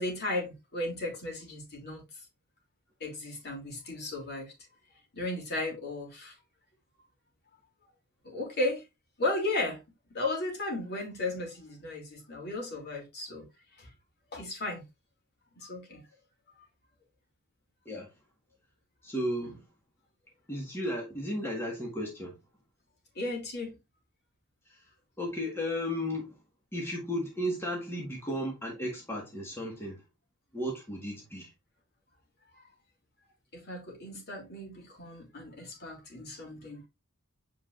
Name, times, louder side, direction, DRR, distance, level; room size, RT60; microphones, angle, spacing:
voice 1, 0.0-2.0 3.0-4.5 5.1-6.3 8.2-8.8 9.2-9.8 10.1-13.4 13.8-13.9 14.3-14.8 15.6-16.0 19.4-19.5 23.1-23.8 32.6-32.7 33.5-36.8, left 2 dB, 50° left, 3.0 m, -35 dB
voice 2, 19.0-19.6 20.5-22.4 24.7-24.8 25.2-26.4 26.7-30.0 30.5-31.5, equal, 10° left, 1.6 m, -34 dB
8.1 x 4.7 x 2.5 m
head